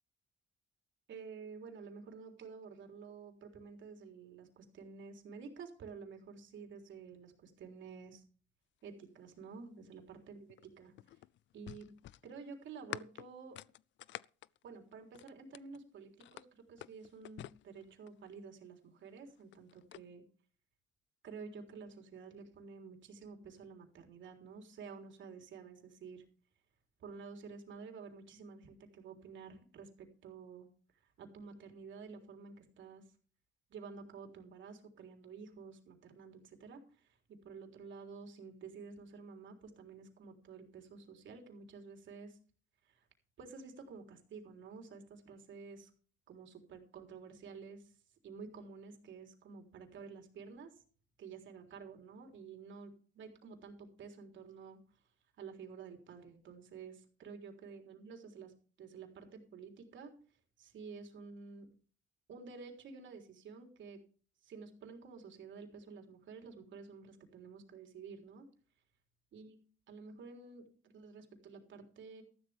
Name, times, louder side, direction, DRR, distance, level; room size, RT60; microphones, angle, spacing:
voice 1, 1.1-8.2 8.8-11.2 11.5-11.9 12.2-13.6 14.6-20.2 21.2-26.2 27.0-30.7 30.9-33.0 33.7-37.2 37.4-42.4 42.8-43.1 43.4-45.9 46.3-48.0 48.2-50.7 51.2-55.0 55.4-60.1 60.6-61.7 62.3-64.0 64.4-68.5 69.3-69.6 69.9-72.2, right 5 dB, 70° right, 3 dB, 3.6 m, -51 dB
sound 1, 10.5-15.8 16.2-18.3 19.3-20.1, left 14 dB, 70° left, 0.4 m, -49 dB
14.0 x 12.0 x 3.4 m, 0.41 s
cardioid pair, 90°, 20 cm